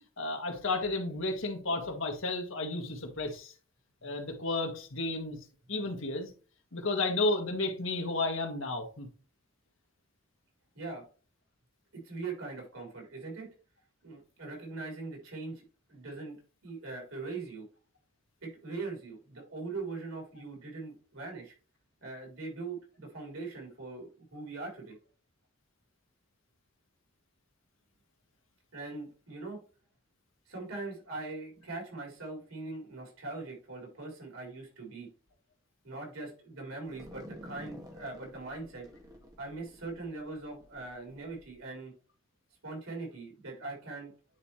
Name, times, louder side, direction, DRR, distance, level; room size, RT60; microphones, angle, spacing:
voice 1, 0.2-3.5 4.0-5.4 5.7-6.3 6.7-9.1, left 2 dB, 65° left, 1.6 m, -32 dB
voice 2, 10.7-11.1 11.9-13.5 14.0-15.6 15.9-16.4 16.6-17.7 18.4-21.5 22.0-25.0 28.7-29.6 30.5-35.1 35.8-38.9 39.4-41.9 42.6-44.1, right 3 dB, 90° right, 3.7 m, -41 dB
sound 1, 36.8-41.5, equal, 15° right, 1.7 m, -51 dB
9.5 x 4.3 x 3.1 m
head